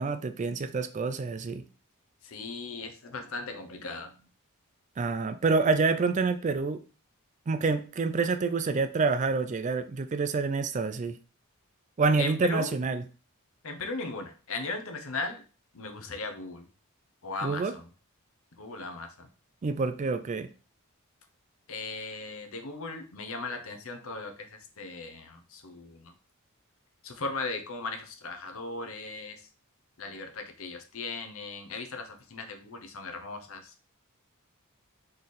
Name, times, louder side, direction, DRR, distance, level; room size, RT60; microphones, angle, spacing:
voice 1, 0.0-1.6 5.0-6.8 7.5-11.2 12.0-13.0 17.4-17.7 19.6-20.5, right 4 dB, 35° right, 10 dB, 0.4 m, -27 dB
voice 2, 2.2-4.2 12.2-12.8 13.6-15.4 15.7-16.7 17.2-17.9 18.6-19.3 21.7-26.1 27.0-29.4 30.0-33.7, left 3 dB, 65° left, 7 dB, 0.8 m, -37 dB
3.8 x 3.3 x 4.1 m, 0.36 s
head